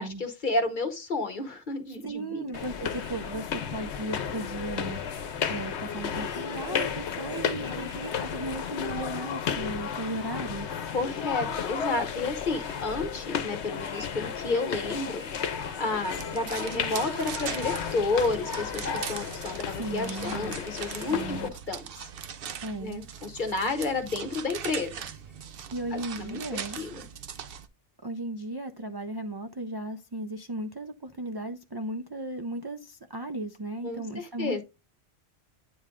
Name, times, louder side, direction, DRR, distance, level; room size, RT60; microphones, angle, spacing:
voice 1, 0.0-2.5 7.5-7.9 10.9-21.4 21.7-22.1 22.8-25.0 25.9-26.4 26.8-27.0 33.8-34.6, left 3 dB, 45° left, 1.1 m, -31 dB
voice 2, 2.0-10.7 19.8-20.5 21.1-21.5 22.6-23.1 25.7-26.8 28.0-34.6, right 2 dB, 35° right, 0.4 m, -36 dB
sound 1, 2.5-21.5, left 7 dB, 75° left, 1.0 m, -33 dB
sound 2, 16.0-27.7, right 8 dB, 60° right, 0.8 m, -40 dB
9.5 x 3.3 x 3.6 m
omnidirectional pair, 1.1 m